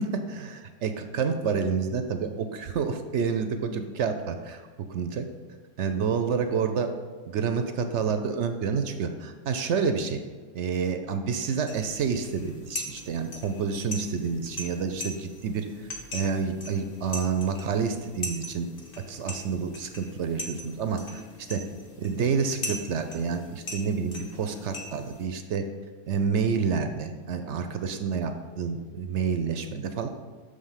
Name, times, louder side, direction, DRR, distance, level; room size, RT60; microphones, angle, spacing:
voice 1, 0.0-4.6 4.9-5.2 5.8-6.9 7.3-10.2 10.5-18.7 19.1-21.2 21.5-21.6 22.0-25.7 26.1-30.1, right 6 dB, 65° right, 7 dB, 0.7 m, -29 dB
sound 1, 11.7-25.3, left 1 dB, 40° left, 1.1 m, -40 dB
6.5 x 5.0 x 5.6 m, 1.5 s
omnidirectional pair, 1.5 m